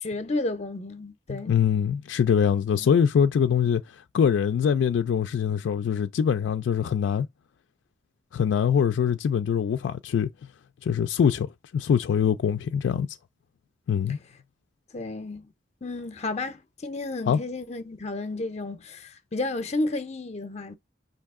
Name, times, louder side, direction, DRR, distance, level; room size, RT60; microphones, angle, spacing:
voice 1, 0.0-1.6 2.8-2.9 14.9-15.5 15.8-20.8, left 2 dB, 35° left, 0.6 m, -32 dB
voice 2, 1.3-3.8 4.1-7.3 8.3-10.3 10.8-13.1 13.9-14.2 17.3-17.4, left 7 dB, 90° left, 0.3 m, -23 dB
5.4 x 2.8 x 3.5 m
head